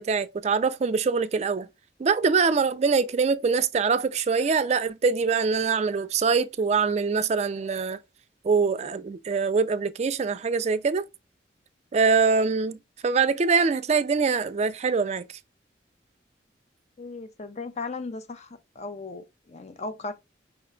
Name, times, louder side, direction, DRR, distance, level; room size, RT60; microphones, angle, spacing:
voice 1, 0.0-1.7 2.0-8.0 8.4-11.1 11.9-12.8 13.0-15.2, right 5 dB, 40° right, 0.3 m, -24 dB
voice 2, 17.0-20.2, left 3 dB, 40° left, 0.6 m, -37 dB
5.5 x 2.2 x 3.6 m
head